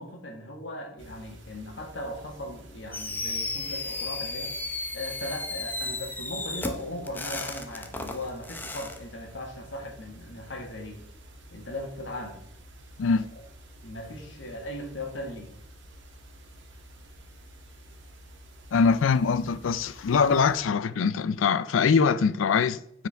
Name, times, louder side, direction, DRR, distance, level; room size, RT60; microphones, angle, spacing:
voice 1, 0.0-4.5 4.9-11.0 11.5-12.4 13.1-13.4 13.8-15.5, left 1 dB, 70° left, 1.7 m, -38 dB
sound 1, 1.0-20.6, equal, 65° right, 1.3 m, -50 dB
Fireworks, 2.9-9.0, left 2 dB, 10° left, 0.6 m, -34 dB
voice 2, 18.7-23.1, left 5 dB, 85° left, 0.4 m, -23 dB
9.7 x 4.8 x 3.4 m
head